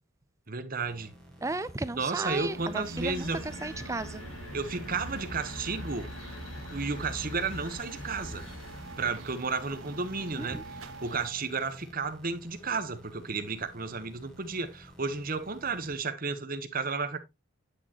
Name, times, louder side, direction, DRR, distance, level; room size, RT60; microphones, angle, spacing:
voice 1, 0.5-1.1 1.9-3.4 4.5-6.1 6.7-8.4 9.0-17.2, right 4 dB, 40° right, 1.0 m, -33 dB
sound 1, 0.8-15.9, equal, ahead, 1.8 m, -52 dB
voice 2, 1.4-3.3 3.6-4.2 10.4-10.6, right 2 dB, 15° right, 0.4 m, -34 dB
sound 2, 2.2-11.3, right 3 dB, 80° right, 1.3 m, -45 dB
sound 3, 3.0-9.6, left 2 dB, 65° left, 1.4 m, -43 dB
9.7 x 6.5 x 2.9 m
head